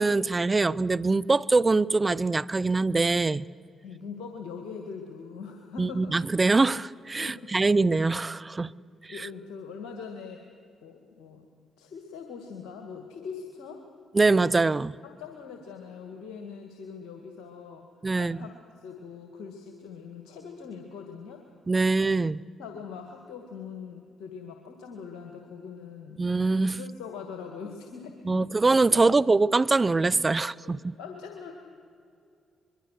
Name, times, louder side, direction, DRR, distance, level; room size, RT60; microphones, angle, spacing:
voice 1, 0.0-3.4 5.8-8.7 9.0-9.1 14.1-14.9 18.0-18.4 21.7-22.4 26.2-26.8 28.3-31.0, right 3 dB, 30° right, 0.6 m, -23 dB
voice 2, 3.8-6.1 7.2-7.5 9.1-10.4 10.8-11.4 11.8-13.8 15.0-17.9 18.1-21.4 22.6-26.3 26.7-28.5 30.4-31.5, left 6 dB, 80° left, 2.0 m, -42 dB
24.5 x 22.5 x 6.6 m
hypercardioid pair, 50°, 0 cm